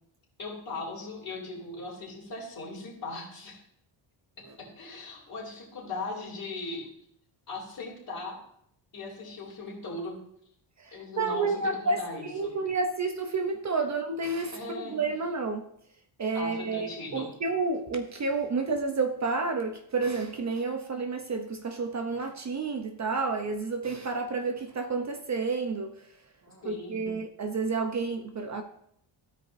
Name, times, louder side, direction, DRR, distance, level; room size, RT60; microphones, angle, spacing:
voice 1, 0.4-3.6 4.4-6.9 7.5-8.4 8.9-10.3 10.9-12.6 14.5-15.0 16.3-17.4 26.6-27.1, left 3 dB, 45° left, -9 dB, 2.9 m, -39 dB
voice 2, 11.2-12.0 12.3-15.6 16.2-25.9 26.7-28.6, right 4 dB, 35° right, 6 dB, 0.7 m, -30 dB
15.0 x 5.0 x 2.6 m, 0.71 s
cardioid pair, 110°, 50 cm